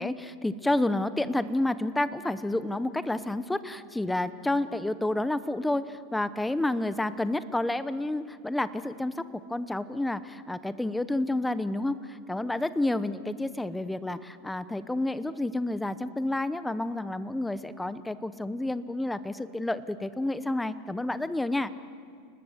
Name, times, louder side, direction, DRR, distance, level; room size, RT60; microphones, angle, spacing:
voice 1, 0.0-9.2 9.5-21.7, left 1 dB, 5° left, 14 dB, 0.8 m, -30 dB
29.0 x 20.0 x 8.0 m, 2.2 s
supercardioid pair, 150°, 0 cm